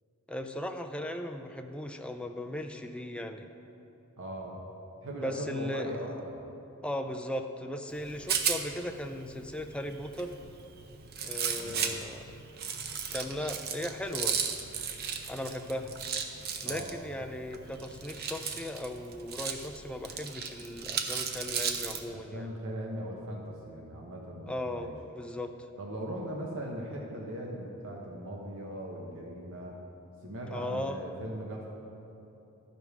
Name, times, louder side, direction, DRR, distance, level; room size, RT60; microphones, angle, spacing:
voice 1, 0.3-3.5 5.1-6.0 6.8-10.3 11.2-12.3 13.1-14.3 15.3-15.9 16.6-22.5 24.5-25.5 30.5-31.0, left 1 dB, 5° left, 5 dB, 0.4 m, -37 dB
voice 2, 4.2-4.6 5.0-6.4 11.5-12.0 16.6-17.0 22.1-24.9 25.8-29.8 30.2-31.7, equal, 65° right, -1 dB, 1.0 m, -39 dB
Rattle, 7.9-22.0, right 6 dB, 45° right, 0.6 m, -36 dB
12.5 x 5.3 x 4.8 m, 3.0 s
head